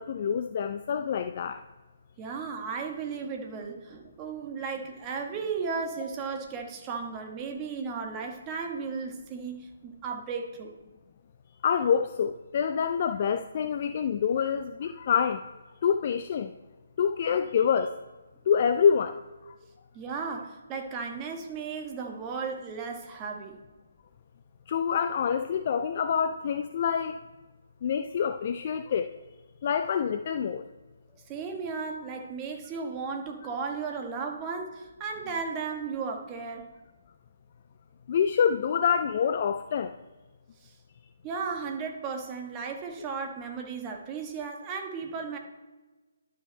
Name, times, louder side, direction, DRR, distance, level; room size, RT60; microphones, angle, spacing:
voice 1, 0.0-1.6 11.6-15.4 15.8-16.5 17.0-17.9 18.5-19.2 19.5-19.6 24.7-27.2 27.8-29.1 29.6-30.6 38.1-39.9, left 7 dB, 40° left, 9 dB, 0.4 m, -26 dB
voice 2, 2.2-10.8 19.9-23.6 31.2-36.7 40.6-40.7 41.2-45.4, right 5 dB, 20° right, 2 dB, 1.3 m, -35 dB
11.5 x 5.6 x 4.3 m, 1.2 s
figure-of-eight pair, 140°, 0 cm